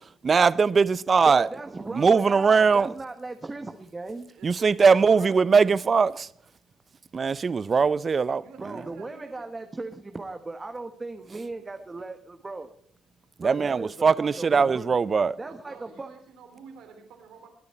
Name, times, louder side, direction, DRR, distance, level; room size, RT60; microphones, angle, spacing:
voice 1, 0.2-1.5 1.9-2.9 4.4-6.3 7.1-8.4 13.4-15.4, right 5 dB, 40° right, 0.6 m, -20 dB
voice 2, 1.2-4.3 8.6-12.7 13.4-14.9 15.4-16.1, right 3 dB, 25° right, 1.3 m, -37 dB
voice 3, 4.3-5.9 8.4-9.3 15.4-17.5, right 5 dB, 85° right, 3.0 m, -49 dB
20.0 x 9.7 x 4.3 m
cardioid pair, 90°, 0 cm